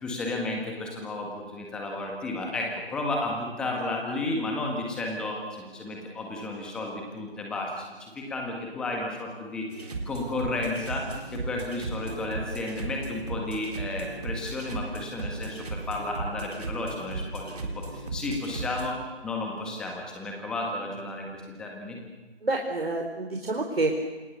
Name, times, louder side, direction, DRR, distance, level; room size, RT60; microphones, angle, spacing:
voice 1, 0.0-19.0 19.2-22.0, left 2 dB, ahead, 0 dB, 1.7 m, -33 dB
sound 1, 9.7-18.9, right 2 dB, 35° right, 3.6 m, -36 dB
voice 2, 22.4-24.1, right 2 dB, 65° right, 2 dB, 4.4 m, -28 dB
28.0 x 28.0 x 6.8 m, 1.3 s
figure-of-eight pair, 160°, 32 cm